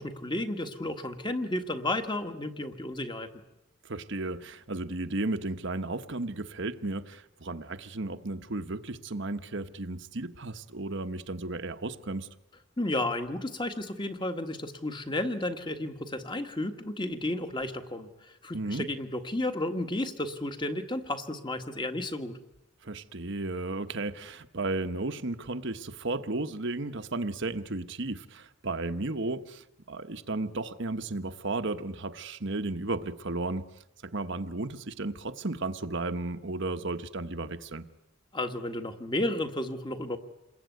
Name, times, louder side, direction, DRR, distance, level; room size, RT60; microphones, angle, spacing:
voice 1, 0.0-3.3 12.8-22.4 38.3-40.2, left 1 dB, 20° left, 7 dB, 1.6 m, -32 dB
voice 2, 3.8-12.3 18.5-18.9 22.8-33.6 34.0-37.8, right 2 dB, 55° right, 9 dB, 1.1 m, -34 dB
28.0 x 22.0 x 9.4 m, 0.94 s
head